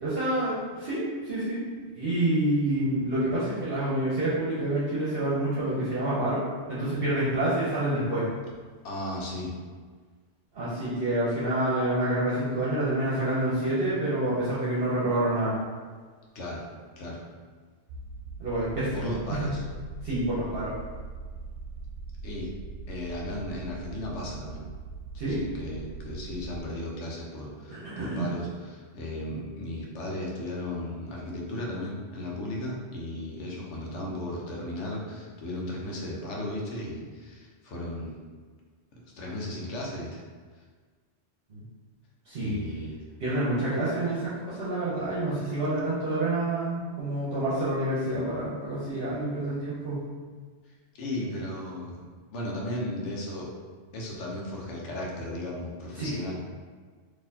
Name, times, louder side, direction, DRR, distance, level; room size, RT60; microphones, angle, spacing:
voice 1, 0.0-1.6 1.9-8.3 10.5-15.5 18.4-19.5 20.0-20.7 25.2-25.4 27.7-28.3 41.5-41.6 42.3-42.6 43.2-50.0 55.9-56.2, right 1 dB, 55° right, -9 dB, 1.0 m, -28 dB
voice 2, 8.8-9.5 16.3-16.6 17.0-17.2 18.9-19.6 22.2-22.5 22.9-24.6 25.1-38.1 38.9-40.2 42.4-43.0 51.0-52.0 52.3-53.5 53.9-56.3, left 1 dB, 80° left, -2 dB, 1.1 m, -35 dB
sound 1, 17.9-26.6, right 4 dB, 80° right, 0.9 m, -41 dB
4.0 x 2.8 x 2.7 m, 1.5 s
omnidirectional pair, 1.2 m